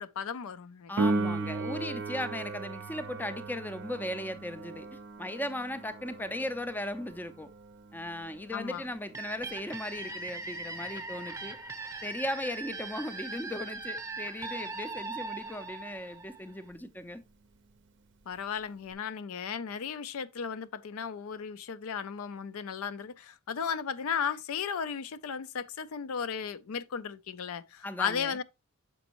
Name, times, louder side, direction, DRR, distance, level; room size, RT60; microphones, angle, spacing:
voice 1, 0.0-0.9 8.5-8.8 18.3-28.4, left 7 dB, 75° left, 0.4 m, -35 dB
voice 2, 0.9-7.5 7.9-11.6 12.0-17.2 27.8-28.4, left 1 dB, 10° left, 0.4 m, -37 dB
Piano, 1.0-11.4 18.9-19.0, right 3 dB, 55° right, 0.6 m, -37 dB
sound 1, 9.1-16.7, right 3 dB, 15° right, 0.8 m, -40 dB
6.9 x 5.2 x 2.9 m
head